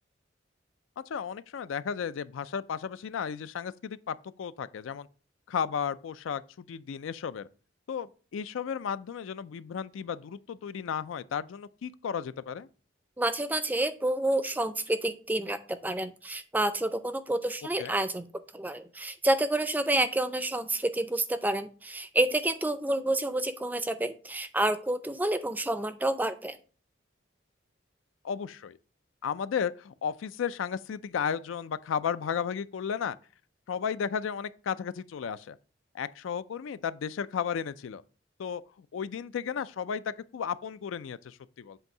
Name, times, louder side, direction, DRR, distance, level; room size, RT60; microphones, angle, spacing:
voice 1, 1.0-5.1 5.5-7.5 7.9-12.7 17.8-17.9 28.2-28.8 29.2-33.2 33.7-35.6 35.9-38.0 38.4-41.8, left 7 dB, 85° left, 0.4 m, -34 dB
voice 2, 13.2-18.3 18.5-26.6, right 1 dB, 10° right, 0.4 m, -29 dB
7.8 x 2.7 x 5.9 m
head